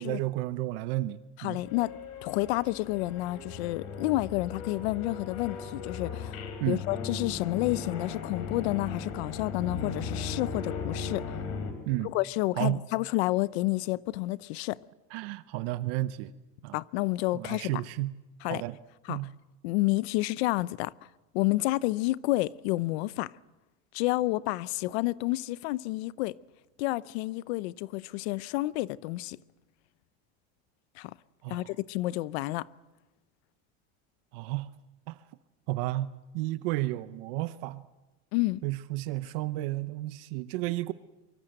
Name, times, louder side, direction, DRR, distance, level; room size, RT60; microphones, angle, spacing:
voice 1, 0.0-1.6 6.6-6.8 11.9-12.1 12.6-12.8 15.1-16.3 16.6-16.8 17.3-18.1 18.4-18.8 19.1-19.3 31.4-31.7 34.3-34.7 35.1-35.2 35.7-37.8 38.6-40.9, right 17 dB, 60° right, 0.8 m, -32 dB
voice 2, 1.4-11.2 12.0-14.8 16.7-17.7 18.4-18.6 19.1-19.2 19.6-20.9 21.3-23.3 23.9-26.4 26.8-29.4 31.0-31.1 31.5-32.7 38.3-38.6, left 19 dB, 70° left, 0.7 m, -30 dB
sound 1, 1.6-11.7, left 5 dB, 45° left, 3.7 m, -37 dB
24.5 x 24.0 x 7.8 m
cardioid pair, 180°, 33 cm